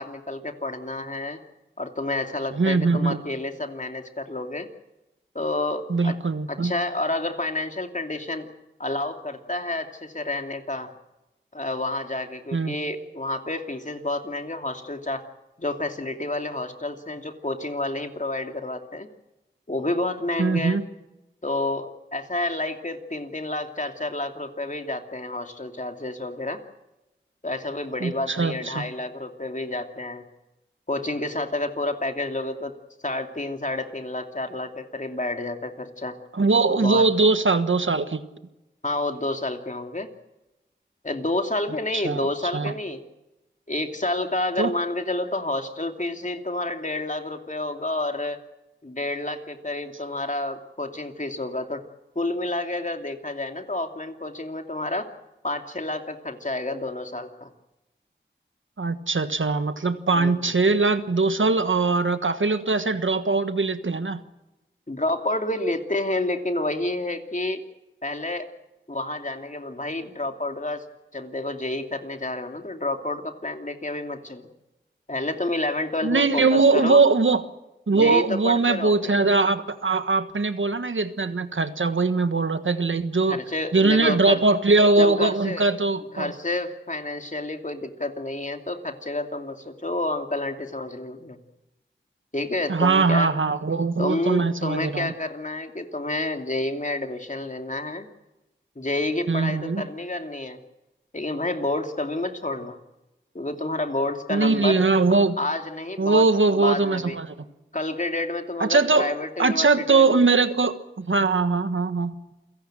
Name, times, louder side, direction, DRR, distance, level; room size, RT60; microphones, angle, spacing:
voice 1, 0.0-1.4 1.8-4.7 5.3-6.1 6.5-8.5 8.8-10.9 11.5-15.2 15.6-19.1 19.7-20.8 21.4-26.6 27.4-30.2 30.9-32.7 33.0-36.1 36.7-37.1 38.8-40.1 41.0-43.0 43.7-48.4 48.8-51.8 52.1-55.1 55.4-57.5 60.1-60.4 64.9-67.6 68.0-68.5 68.9-70.8 71.1-74.4 75.1-77.0 77.9-79.1 83.3-84.4 85.0-85.7 86.1-91.4 92.3-93.3 94.0-98.1 98.8-100.6 101.1-102.8 103.3-104.8 105.4-106.3 106.5-107.2 107.7-110.2, left 2 dB, 40° left, 5 dB, 2.8 m, -29 dB
voice 2, 2.5-3.2 5.9-6.7 12.5-12.7 20.4-20.9 28.0-28.9 36.3-38.2 41.9-42.3 42.5-42.7 44.6-44.7 58.8-64.2 76.0-77.4 77.9-83.4 83.7-86.3 92.7-95.1 99.3-99.8 104.3-105.4 106.0-107.3 108.6-112.1, right 3 dB, 85° right, 10 dB, 1.4 m, -21 dB
28.5 x 17.5 x 7.6 m, 1.0 s
wide cardioid pair, 45°, 20 cm